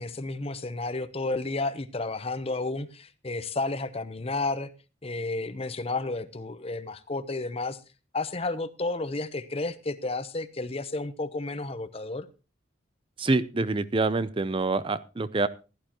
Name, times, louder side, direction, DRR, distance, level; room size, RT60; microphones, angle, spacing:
voice 1, 0.0-4.7 5.0-7.8 8.1-12.3, left 2 dB, 30° left, 0.8 m, -32 dB
voice 2, 13.2-15.5, right 3 dB, 25° right, 0.5 m, -26 dB
16.0 x 11.5 x 3.0 m
head